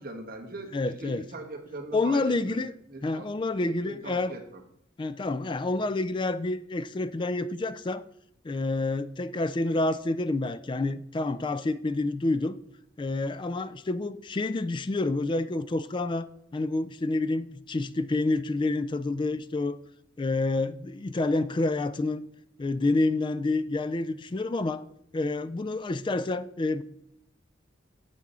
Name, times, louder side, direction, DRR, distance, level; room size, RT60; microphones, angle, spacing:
voice 1, 0.0-2.6 2.9-3.3 3.8-4.6, right 2 dB, 50° right, 1.2 m, -41 dB
voice 2, 0.7-1.3 1.9-2.7 3.0-4.4 5.0-8.0 8.4-12.6 13.0-16.3 16.5-19.8 20.2-22.2 22.6-24.8 25.1-26.8, left 2 dB, 25° left, 0.4 m, -28 dB
8.0 x 6.0 x 4.2 m
head